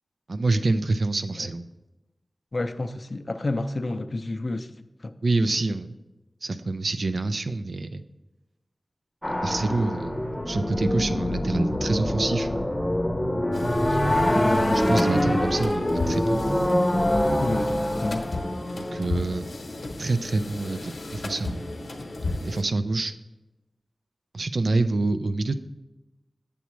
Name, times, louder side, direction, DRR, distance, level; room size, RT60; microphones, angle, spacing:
voice 1, 0.3-1.6 5.2-5.9 6.4-8.0 9.3-12.5 13.9-14.1 14.7-16.4 18.8-19.5 20.0-21.7 22.4-23.1 24.3-25.7, right 2 dB, 70° right, 10 dB, 0.4 m, -26 dB
voice 2, 2.5-4.7 5.0-5.1 17.4-18.3, left 2 dB, 50° left, 9 dB, 0.4 m, -30 dB
sound 1, 9.2-19.3, left 1 dB, 10° left, 0.8 m, -25 dB
sound 2, 13.5-22.6, left 2 dB, 75° left, 0.8 m, -35 dB
8.2 x 7.0 x 3.1 m, 1.0 s
wide cardioid pair, 70°, 0 cm